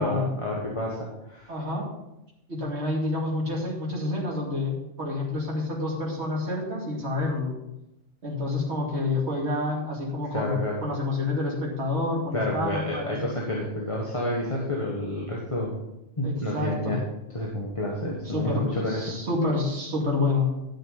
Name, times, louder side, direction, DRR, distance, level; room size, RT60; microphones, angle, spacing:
voice 1, 0.0-1.5 10.3-10.7 12.3-15.7 16.2-17.0 17.3-19.1, left 1 dB, 25° left, -3 dB, 1.6 m, -29 dB
voice 2, 1.5-1.8 2.5-7.5 8.2-13.2 16.2-17.0 18.2-20.5, left 2 dB, 65° right, -3 dB, 2.8 m, -28 dB
11.5 x 6.5 x 5.2 m, 0.89 s
omnidirectional pair, 1.2 m